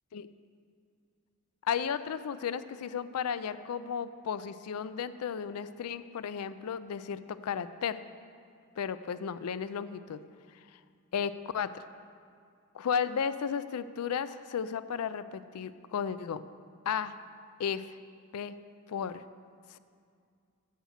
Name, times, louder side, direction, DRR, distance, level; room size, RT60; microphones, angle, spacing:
voice 1, 1.6-8.0 8.8-10.2 11.1-11.7 12.7-16.4 16.9-17.1 17.6-17.8 18.3-18.5 18.9-19.2 19.7-19.8, left 7 dB, 90° left, 14 dB, 0.4 m, -34 dB
11.0 x 6.6 x 6.5 m, 2.3 s
head